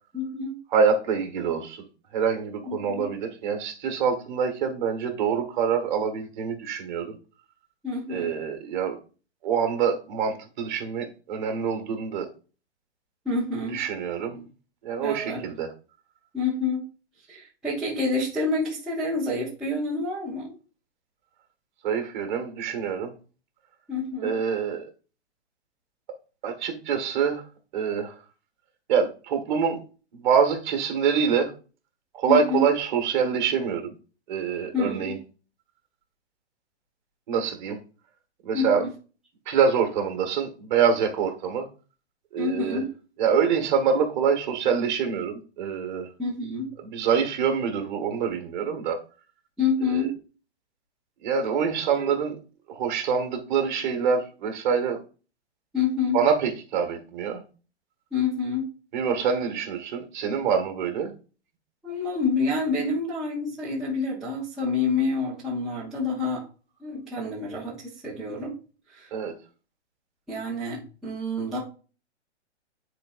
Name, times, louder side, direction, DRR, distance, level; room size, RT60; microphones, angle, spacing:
voice 1, 0.1-0.6 2.6-3.1 7.8-8.3 13.3-13.8 14.3-14.4 15.0-15.4 16.3-16.9 17.3-20.5 23.9-24.4 32.3-32.6 34.7-35.2 38.5-38.9 42.4-42.9 46.2-46.7 49.6-50.1 52.0-52.1 55.7-56.2 58.1-58.7 61.8-66.4 66.8-68.6 68.9-69.1 70.3-71.6, left 4 dB, ahead, 0.5 m, -28 dB
voice 2, 0.7-1.8 2.1-7.1 8.1-9.0 9.4-12.3 13.7-14.3 14.8-15.7 21.8-23.1 24.2-24.9 26.4-27.4 27.7-28.1 28.9-29.8 30.1-31.5 32.1-33.9 34.3-35.2 37.3-37.8 38.4-38.8 39.5-41.7 42.3-42.8 43.2-46.1 46.8-49.0 49.9-50.1 51.2-52.3 52.7-55.0 56.1-57.4 58.9-61.1 69.1-69.3, right 6 dB, 40° right, 1.3 m, -25 dB
9.6 x 4.2 x 2.3 m
hypercardioid pair, 165°, 35 cm